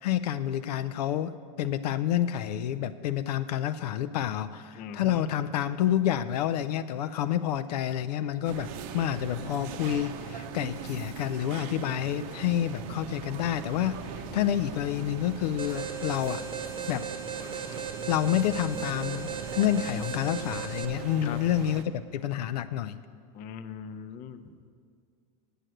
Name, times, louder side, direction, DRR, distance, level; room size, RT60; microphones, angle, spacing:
voice 1, 0.0-16.4 16.9-17.1 18.1-22.9, left 11 dB, 85° left, 11 dB, 0.4 m, -29 dB
voice 2, 4.8-5.3 21.2-21.4 23.3-24.4, left 8 dB, 45° left, 10 dB, 0.6 m, -40 dB
sound 1, 8.5-21.8, right 7 dB, 60° right, 0.7 m, -40 dB
Alarm, 15.6-20.9, right 7 dB, 25° right, 0.9 m, -37 dB
8.9 x 6.6 x 7.7 m, 2.1 s
supercardioid pair, 120°, 20 cm